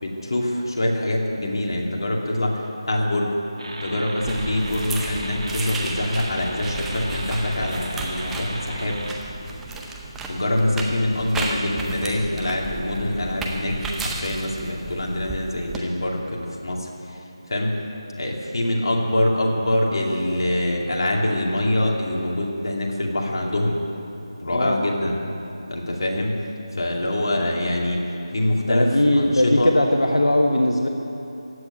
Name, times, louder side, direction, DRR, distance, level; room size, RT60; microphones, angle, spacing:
voice 1, 0.0-3.3 3.8-9.0 10.3-16.9 17.5-17.7 18.2-23.7 24.4-25.2 25.7-26.4 26.7-28.0 28.3-28.9 29.2-29.7, left 1 dB, 50° left, -1 dB, 2.5 m, -24 dB
sound 1, 3.6-9.1, right 1 dB, 75° right, 2.6 m, -36 dB
sound 2, 4.2-15.8, right 3 dB, 5° right, 0.6 m, -33 dB
voice 2, 28.7-30.9, left 1 dB, 85° left, 2 dB, 1.3 m, -19 dB
15.5 x 7.6 x 9.5 m, 2.9 s
figure-of-eight pair, 165°, 3 cm